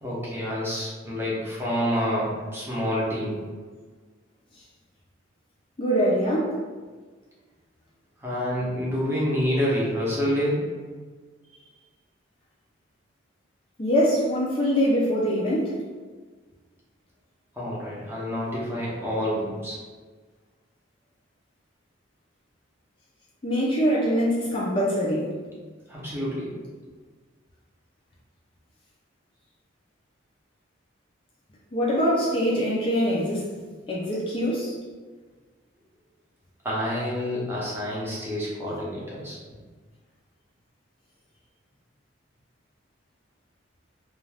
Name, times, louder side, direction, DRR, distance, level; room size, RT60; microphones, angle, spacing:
voice 1, 0.0-3.4 8.2-10.7 17.6-19.8 25.9-26.5 36.6-39.4, equal, 10° right, -7 dB, 0.7 m, -28 dB
voice 2, 5.8-6.6 13.8-15.8 23.4-25.3 31.7-33.5 33.9-34.7, equal, 30° left, -6 dB, 0.4 m, -23 dB
2.4 x 2.3 x 3.3 m, 1.4 s
head